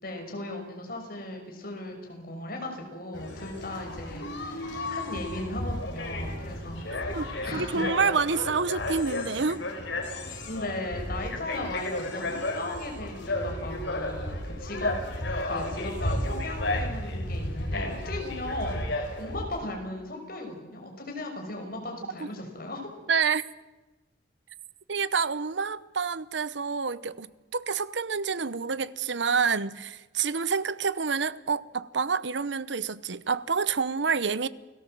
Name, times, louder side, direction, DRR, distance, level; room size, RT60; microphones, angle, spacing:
voice 1, 0.0-7.9 10.5-14.9 15.4-22.9, left 2 dB, 50° left, 5.8 m, -37 dB
sound 1, 3.1-19.4, left 1 dB, 75° left, 4.6 m, -33 dB
voice 2, 6.9-9.6 23.1-23.4 24.9-34.5, right 5 dB, 70° right, 0.9 m, -28 dB
28.5 x 18.0 x 7.7 m
head